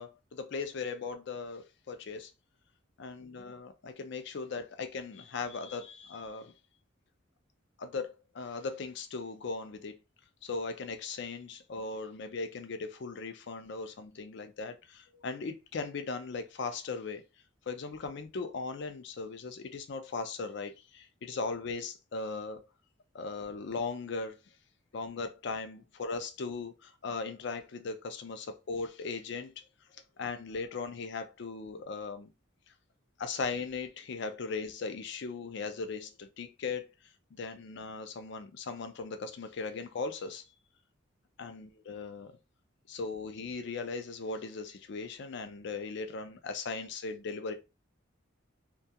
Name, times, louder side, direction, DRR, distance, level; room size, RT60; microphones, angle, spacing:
voice 1, 0.0-2.3 3.0-6.5 7.8-10.0 10.4-17.2 17.7-22.6 23.1-24.4 24.9-29.6 30.2-32.3 33.2-36.9 37.3-40.4 41.4-42.3 42.9-47.5, left 4 dB, 55° left, 0.4 m, -38 dB
2.3 x 2.3 x 2.7 m
head